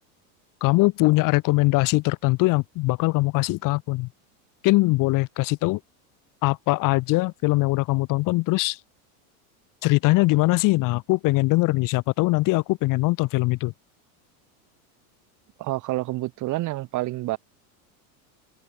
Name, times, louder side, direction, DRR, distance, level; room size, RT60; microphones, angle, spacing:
voice 1, 0.6-4.1 4.6-5.8 6.4-8.8 9.8-13.7, left 22 dB, 50° left, 4.0 m, -21 dB
voice 2, 15.6-17.4, right 18 dB, 45° right, 6.4 m, -28 dB
supercardioid pair, 145°, 42 cm